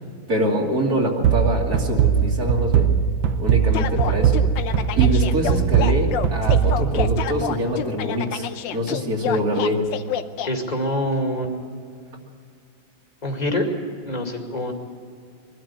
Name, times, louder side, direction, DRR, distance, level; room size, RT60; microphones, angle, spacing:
voice 1, 0.3-3.0 3.4-4.5 5.0-9.9, equal, 50° right, 0 dB, 3.0 m, -24 dB
sound 1, 1.2-7.9, right 7 dB, 75° right, 1.6 m, -20 dB
sound 2, 3.7-10.5, left 9 dB, 70° left, 1.4 m, -28 dB
voice 2, 10.4-11.6 11.9-12.1 13.2-13.7 14.1-14.7, equal, 20° left, 3 dB, 2.3 m, -25 dB
23.0 x 13.0 x 9.6 m, 2.3 s
omnidirectional pair, 2.1 m